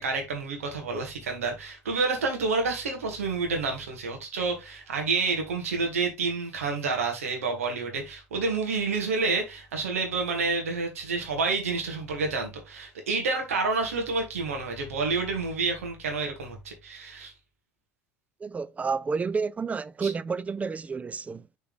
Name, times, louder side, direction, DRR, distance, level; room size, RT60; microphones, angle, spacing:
voice 1, 0.0-17.3 20.0-20.1, right 4 dB, 70° right, 2.2 m, -29 dB
voice 2, 18.4-21.4, right 5 dB, 20° right, 0.4 m, -30 dB
7.0 x 4.5 x 3.5 m
figure-of-eight pair, 65°, 8 cm